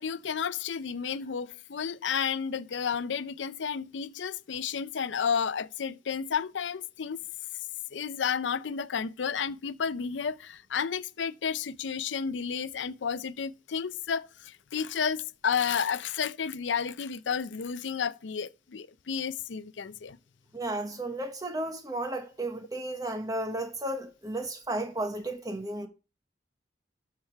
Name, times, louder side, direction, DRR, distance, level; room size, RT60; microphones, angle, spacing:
voice 1, 0.0-7.2 7.9-20.2, left 6 dB, 80° left, 0.5 m, -32 dB
voice 2, 20.5-25.9, right 1 dB, 20° right, 1.1 m, -33 dB
13.0 x 4.8 x 4.5 m
head